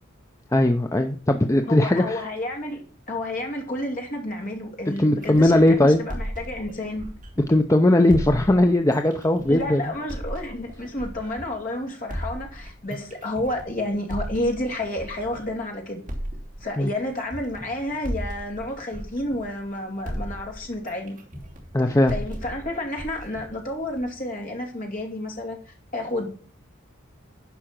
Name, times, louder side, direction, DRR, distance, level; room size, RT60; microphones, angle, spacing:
voice 1, 0.5-2.2 5.0-6.0 7.5-9.8 16.8-16.9 21.7-22.1, left 1 dB, 15° left, 0.5 m, -19 dB
voice 2, 1.7-7.1 9.5-16.0 16.6-21.2 21.8-26.3, left 1 dB, 40° left, 2.6 m, -30 dB
sound 1, 5.2-7.7 8.1-11.6 12.1-15.6 16.1-19.8 20.1-24.1, equal, 40° right, 2.8 m, -36 dB
11.5 x 5.0 x 5.9 m
head